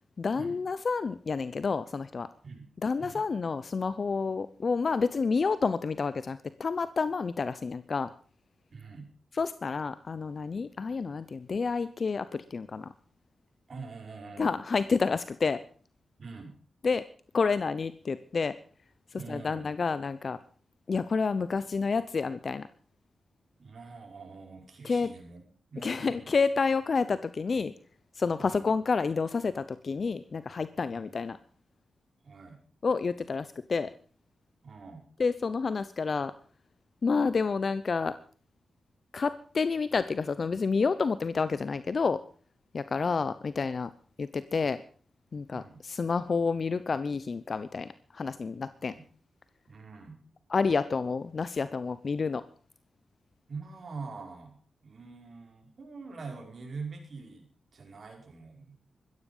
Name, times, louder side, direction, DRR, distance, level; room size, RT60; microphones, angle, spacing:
voice 1, 0.2-2.3 2.8-8.1 9.4-12.9 14.4-15.6 16.8-17.1 17.3-18.5 19.3-20.4 20.9-22.7 24.8-25.1 25.8-27.7 28.2-31.4 32.8-33.9 35.2-36.3 37.0-38.1 39.1-42.2 42.7-43.9 44.2-44.8 45.3-47.9 48.1-48.9 50.5-52.4, left 4 dB, 55° left, 14 dB, 0.8 m, -29 dB
voice 2, 8.7-9.1 13.7-14.5 16.2-16.5 19.1-19.7 23.6-25.4 25.7-26.3 28.4-28.7 30.9-31.2 32.2-32.6 34.6-35.0 45.5-45.8 48.8-49.0 49.7-50.2 53.5-54.6 54.8-58.7, right 4 dB, 60° right, 3 dB, 5.1 m, -44 dB
15.0 x 14.0 x 5.5 m, 0.43 s
cardioid pair, 55°, 0 cm